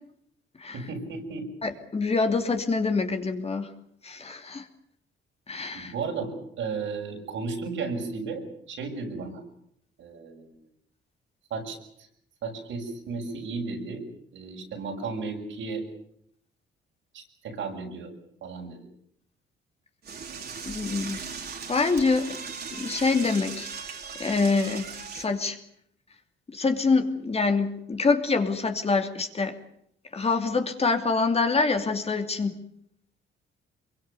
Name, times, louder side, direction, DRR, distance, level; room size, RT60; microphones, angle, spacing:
voice 1, 0.7-1.5 5.8-9.4 10.0-10.5 11.5-12.1 12.4-14.0 14.3-15.8 17.1-18.1 18.4-18.8, right 4 dB, 75° right, 2 dB, 6.9 m, -34 dB
voice 2, 1.6-3.7 4.0-4.6 5.5-5.9 20.6-21.2 21.7-22.4 22.8-23.7 24.2-24.9 25.1-25.6 26.5-29.5 30.1-32.6, left 4 dB, 30° left, 6 dB, 2.8 m, -25 dB
Door / Toilet flush, 20.0-25.3, right 5 dB, 50° right, 4.1 m, -38 dB
25.0 x 23.0 x 7.0 m, 0.71 s
cardioid pair, 90°, 20 cm